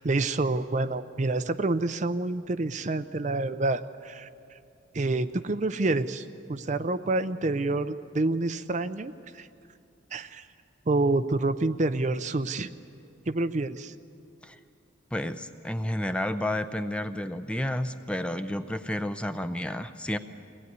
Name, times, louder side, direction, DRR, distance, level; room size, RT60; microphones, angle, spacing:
voice 1, 0.0-4.3 4.9-9.5 10.1-10.5 10.9-12.7 13.3-13.9, right 2 dB, 40° right, 11 dB, 0.5 m, -28 dB
voice 2, 15.1-20.2, left 1 dB, 5° left, 9 dB, 0.6 m, -31 dB
23.0 x 18.0 x 9.4 m, 2.6 s
head